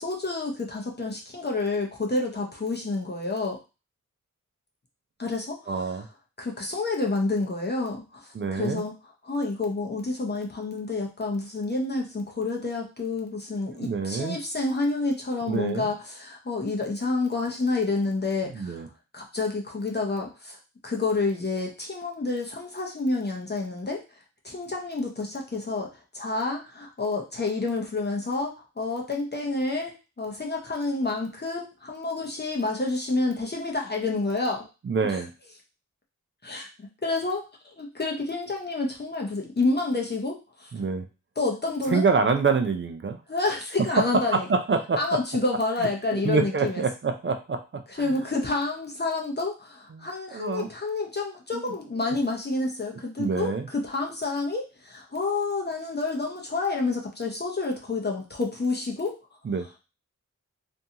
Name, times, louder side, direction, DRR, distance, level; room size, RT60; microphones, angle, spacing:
voice 1, 0.0-3.6 5.2-6.0 6.4-8.9 9.2-18.9 19.1-20.6 20.8-24.0 24.4-34.7 35.1-35.2 36.4-40.7 41.4-42.1 43.3-44.5 45.0-46.8 47.9-59.2, left 3 dB, 35° left, 0 dB, 0.7 m, -29 dB
voice 2, 5.7-6.1 8.3-8.8 13.7-14.4 15.5-15.9 18.6-18.9 34.9-35.3 40.7-41.1 41.9-43.2 43.9-44.0 44.3-45.0 46.2-48.1 49.9-50.7 51.5-51.7 53.2-53.7 59.4-59.7, right 4 dB, 40° right, 7 dB, 0.4 m, -26 dB
2.6 x 2.2 x 2.7 m, 0.30 s
cardioid pair, 45°, 31 cm